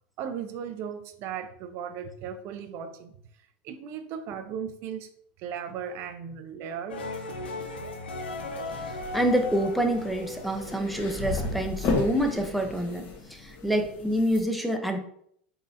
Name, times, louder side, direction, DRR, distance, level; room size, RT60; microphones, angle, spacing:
voice 1, 0.2-3.2 3.6-5.1 5.4-7.0, right 7 dB, 50° right, 8 dB, 0.4 m, -36 dB
sound 1, 6.9-11.6, left 2 dB, 85° left, 0.6 m, -37 dB
sound 2, 8.2-14.4, left 3 dB, 40° left, 1.1 m, -34 dB
voice 2, 9.1-15.0, right 1 dB, ahead, 3 dB, 0.6 m, -27 dB
3.9 x 3.7 x 2.7 m, 0.67 s
hypercardioid pair, 105°, 5 cm